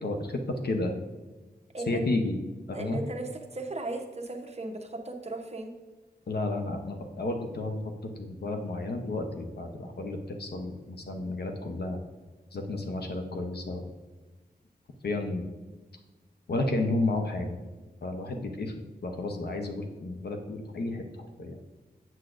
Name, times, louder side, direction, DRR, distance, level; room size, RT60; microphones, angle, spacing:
voice 1, 0.0-0.9 1.9-2.4 2.7-3.0 6.3-12.0 12.5-13.9 15.0-15.4 16.5-17.6 18.0-18.7 19.0-21.6, left 2 dB, 75° left, 4 dB, 0.8 m, -32 dB
voice 2, 2.7-5.7, right 2 dB, 40° right, 3 dB, 0.8 m, -36 dB
7.9 x 7.4 x 2.5 m, 1.3 s
wide cardioid pair, 115°, 17 cm